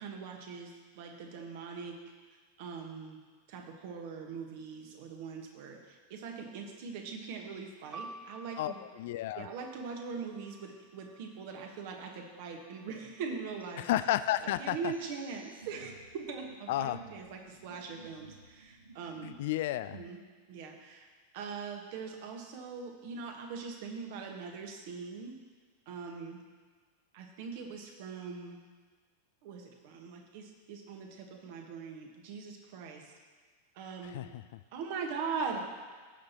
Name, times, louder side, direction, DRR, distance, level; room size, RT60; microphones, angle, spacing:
voice 1, 0.0-2.0 2.6-3.2 3.5-8.8 9.4-13.8 14.4-19.4 19.9-20.2 20.5-21.1 21.3-25.4 25.9-26.4 27.1-28.6 29.4-33.1 33.7-34.3 34.7-35.7, right 5 dB, 50° right, 2 dB, 1.5 m, -41 dB
sound 1, 7.9-11.8 12.6-13.3, right 2 dB, 15° right, 0.4 m, -51 dB
voice 2, 8.6-9.5 13.8-14.8 16.7-17.0 19.2-20.0 34.1-34.3, left 14 dB, 55° left, 14 dB, 0.3 m, -31 dB
sound 2, 13.6-19.4, right 3 dB, 80° right, 0.7 m, -55 dB
17.0 x 6.5 x 3.0 m, 1.5 s
figure-of-eight pair, 90°, 0 cm